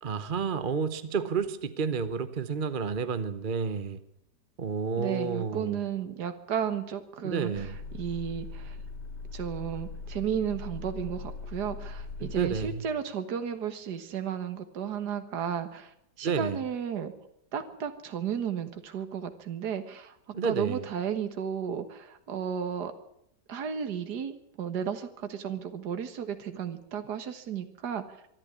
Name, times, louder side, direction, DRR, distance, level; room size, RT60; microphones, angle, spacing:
voice 1, 0.0-4.0 4.6-5.8 7.2-7.8 12.2-12.8 16.2-16.6 20.3-20.9, right 5 dB, 40° right, 12 dB, 0.9 m, -30 dB
voice 2, 5.0-8.8 9.3-17.1 17.5-22.9 23.5-28.0, right 8 dB, 70° right, 8 dB, 2.0 m, -33 dB
sound 1, 7.5-12.7, left 3 dB, 80° left, 3.1 m, -40 dB
24.0 x 12.0 x 9.7 m, 0.78 s
omnidirectional pair, 1.8 m